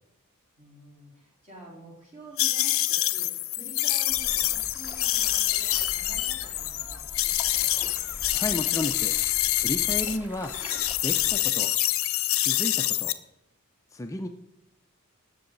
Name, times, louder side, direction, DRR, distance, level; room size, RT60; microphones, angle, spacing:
voice 1, 0.6-8.0, right 1 dB, 30° right, -4 dB, 3.9 m, -48 dB
sound 1, 2.4-10.2 10.5-13.1, left 15 dB, 65° left, 0.6 m, -26 dB
sound 2, 4.1-11.4, equal, 10° right, 1.0 m, -44 dB
voice 2, 8.3-9.2 9.5-10.6 11.0-11.7 12.4-13.2 13.9-14.3, left 1 dB, 15° left, 5 dB, 0.4 m, -33 dB
19.0 x 6.9 x 3.9 m, 0.88 s
head